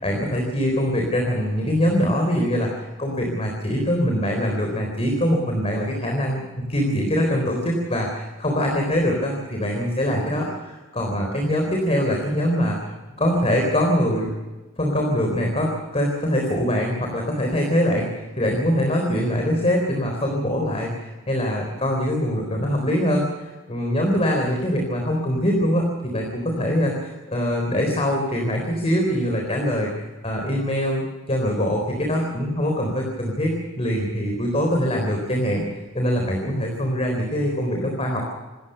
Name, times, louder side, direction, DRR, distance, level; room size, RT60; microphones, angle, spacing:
voice 1, 0.0-12.8 13.2-14.3 14.8-29.9 30.2-38.3, equal, 30° left, 1 dB, 3.9 m, -23 dB
26.5 x 14.5 x 6.8 m, 1.2 s
head